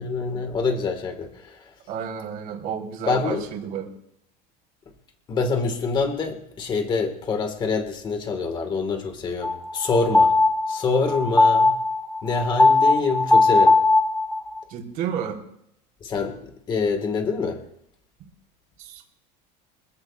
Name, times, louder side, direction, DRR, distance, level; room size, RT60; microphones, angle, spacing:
voice 1, 0.0-1.6 3.1-3.5 5.3-10.3 10.7-11.8 12.2-13.8 16.0-16.4 16.7-17.6, left 4 dB, 20° left, 5 dB, 1.7 m, -25 dB
voice 2, 1.9-3.9 14.7-15.4 18.8-19.0, right 8 dB, 45° right, 0 dB, 3.7 m, -31 dB
sound 1, 9.4-14.6, left 3 dB, 5° left, 0.7 m, -19 dB
26.0 x 16.0 x 2.4 m, 0.76 s
cardioid pair, 175°, 21 cm